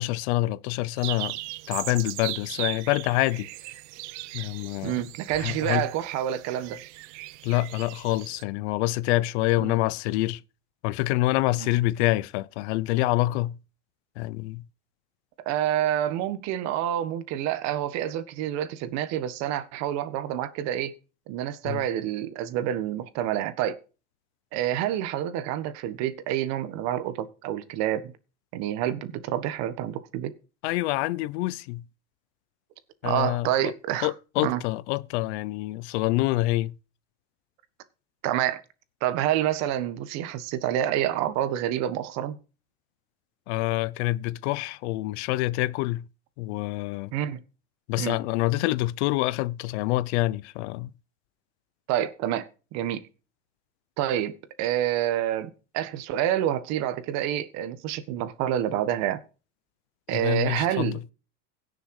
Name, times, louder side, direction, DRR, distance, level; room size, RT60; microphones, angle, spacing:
voice 1, 0.0-1.4 1.7-3.5 4.3-5.0 5.4-5.9 7.4-10.4 10.8-13.6 14.2-14.6 21.6-21.8 30.6-31.8 33.0-33.7 34.0-36.7 43.5-46.0 46.4-47.1 47.9-50.9 60.1-60.9, left 18 dB, 65° left, 0.8 m, -26 dB
sound 1, 1.0-8.4, right 20 dB, 70° right, 0.8 m, -38 dB
voice 2, 4.8-6.8 11.6-11.7 15.5-20.9 21.3-23.8 24.5-28.1 28.5-30.3 33.0-34.1 34.4-34.6 38.2-38.6 39.0-42.4 47.1-47.4 48.0-48.2 51.9-53.0 54.0-59.2 60.1-61.0, right 11 dB, 50° right, 1.6 m, -28 dB
16.5 x 6.9 x 4.8 m
supercardioid pair, 160°, 36 cm